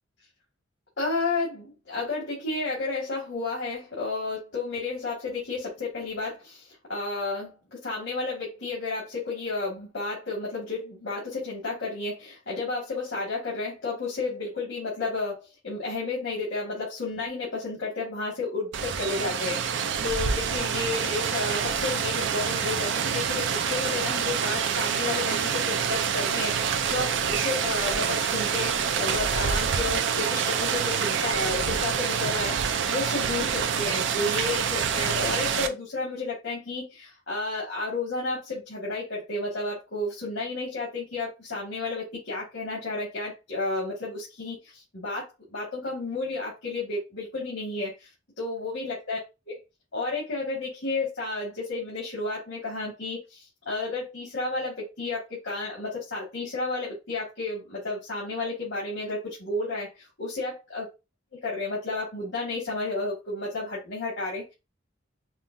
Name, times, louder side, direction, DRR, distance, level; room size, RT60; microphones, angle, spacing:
voice 1, 1.0-6.6 6.9-47.9 48.4-49.2 49.5-49.6 49.9-59.9 60.2-60.8 61.4-64.5, left 3 dB, 85° left, 2.1 m, -32 dB
Rain, 18.7-35.7, right 7 dB, 75° right, 0.4 m, -27 dB
5.5 x 2.3 x 2.6 m
head